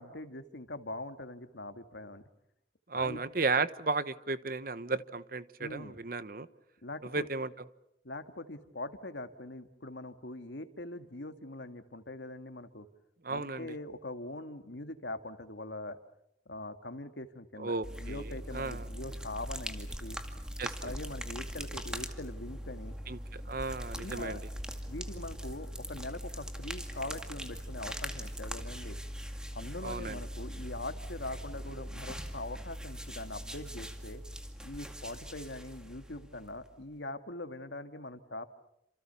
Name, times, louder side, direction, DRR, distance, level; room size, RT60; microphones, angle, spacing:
voice 1, 0.0-2.2 2.9-3.2 5.6-6.0 6.8-7.3 8.0-12.9 13.3-16.0 16.5-20.2 20.8-23.0 23.9-24.4 24.9-29.0 29.5-34.2 34.6-38.5, left 2 dB, 85° left, 8 dB, 2.0 m, -42 dB
voice 2, 2.9-6.5 7.1-7.5 13.2-13.7 17.6-18.9 20.6-20.9 23.1-24.4 29.8-30.2, right 3 dB, 55° right, 14 dB, 1.1 m, -34 dB
sound 1, 17.8-36.7, equal, 5° right, 2.1 m, -41 dB
29.5 x 27.0 x 7.0 m, 0.81 s
head